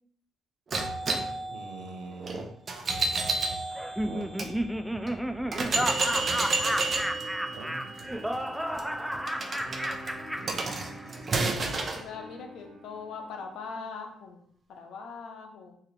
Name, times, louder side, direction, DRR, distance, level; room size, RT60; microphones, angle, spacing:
sound 1, 0.7-4.5 5.1-5.2 5.5-12.0, right 3 dB, 45° right, 0.7 m, -31 dB
voice 1, 1.5-2.5 4.0-4.3 5.5-5.9 7.4-7.9 10.4-11.3, right 4 dB, 85° right, 4 dB, 0.7 m, -43 dB
Laughter, 3.7-11.2, equal, 5° right, 0.3 m, -32 dB
sound 2, 5.6-13.6, right 1 dB, 60° right, 1.2 m, -47 dB
voice 2, 6.0-6.5 11.8-14.4 14.7-15.8, left 5 dB, 80° left, 3 dB, 0.8 m, -41 dB
4.7 x 2.9 x 3.3 m, 0.65 s
cardioid pair, 90°, 0 cm